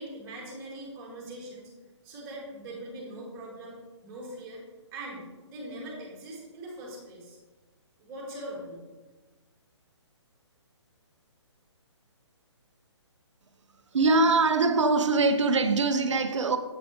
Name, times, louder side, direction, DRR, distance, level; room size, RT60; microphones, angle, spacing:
voice 1, 0.0-1.7 2.0-4.7 4.9-7.4 8.0-8.9, right 1 dB, 20° right, 2.1 m, -41 dB
voice 2, 13.9-16.6, right 3 dB, 80° right, 0.7 m, -23 dB
8.2 x 7.0 x 3.1 m
hypercardioid pair, 155°, 15 cm